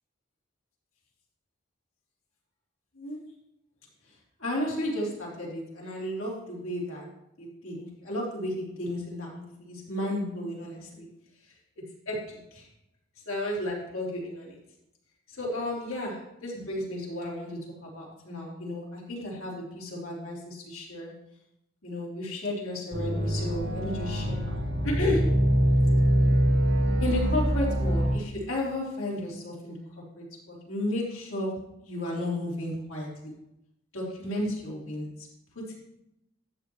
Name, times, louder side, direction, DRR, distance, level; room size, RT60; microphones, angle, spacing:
voice 1, 4.4-7.1 7.4-11.1 12.0-12.7 13.2-14.6 15.3-21.1 21.8-25.4 27.0-29.8 30.1-33.3 33.9-35.3 35.6-35.8, left 1 dB, 90° left, -4 dB, 3.3 m, -33 dB
sound 1, 22.9-28.2, equal, 55° right, 1.4 m, -24 dB
12.0 x 7.8 x 3.1 m, 0.85 s
head